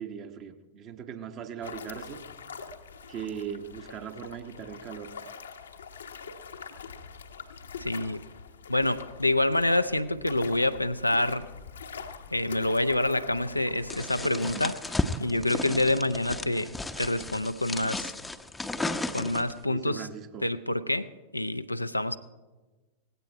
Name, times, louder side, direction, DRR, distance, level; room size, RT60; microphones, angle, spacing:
voice 1, 0.0-2.2 3.1-5.1 19.6-20.5, right 8 dB, 35° right, 1.2 m, -39 dB
sound 1, 1.6-15.3, left 6 dB, 70° left, 1.0 m, -44 dB
voice 2, 7.8-8.2 8.7-11.5 12.3-14.8 15.2-18.1 19.1-20.1 20.4-22.2, left 1 dB, 85° left, 0.5 m, -27 dB
sound 2, 13.9-19.6, left 2 dB, 10° left, 0.8 m, -34 dB
18.0 x 16.0 x 4.5 m
figure-of-eight pair, 90°, 0 cm